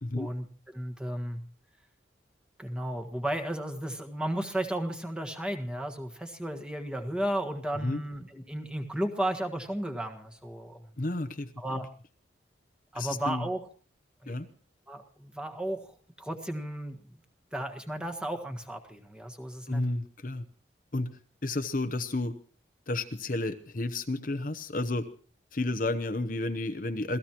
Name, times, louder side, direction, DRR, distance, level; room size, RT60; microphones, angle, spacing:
voice 1, 0.2-1.4 2.6-10.9 11.6-11.9 12.9-13.6 14.2-14.4 14.9-17.0 17.5-19.8, right 1 dB, 5° right, 4 dB, 1.6 m, -34 dB
voice 2, 11.0-11.8 12.9-13.5 14.3-14.5 19.7-20.4 20.9-22.3 22.9-25.1 25.5-27.2, left 2 dB, 45° left, 9 dB, 0.8 m, -31 dB
27.0 x 17.5 x 3.0 m, 0.41 s
head